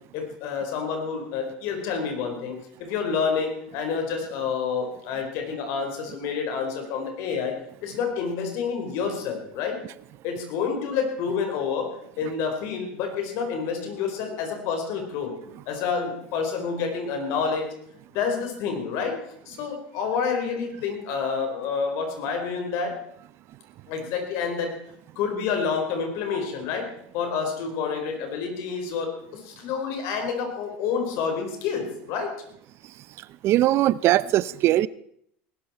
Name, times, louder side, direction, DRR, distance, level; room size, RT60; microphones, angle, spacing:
voice 1, 0.1-7.5 7.8-9.8 10.2-15.3 15.7-17.7 18.1-19.2 19.5-23.0 23.9-24.8 25.2-26.9 27.1-32.3, left 6 dB, 65° left, 4 dB, 4.6 m, -28 dB
voice 2, 33.4-34.9, right 14 dB, 50° right, 19 dB, 0.5 m, -20 dB
19.5 x 12.5 x 4.5 m, 0.68 s
hypercardioid pair, 95°, 6 cm